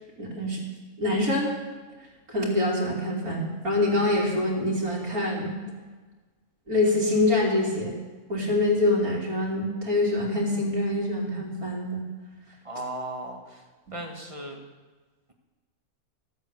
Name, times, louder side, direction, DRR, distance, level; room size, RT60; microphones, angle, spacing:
voice 1, 0.2-0.6 1.0-1.5 2.3-5.5 6.7-8.0 8.3-12.0, left 2 dB, 75° right, -3 dB, 3.7 m, -25 dB
voice 2, 12.6-13.6 13.9-14.6, right 1 dB, 20° right, 2 dB, 1.6 m, -36 dB
13.5 x 8.7 x 8.3 m, 1.3 s
omnidirectional pair, 1.5 m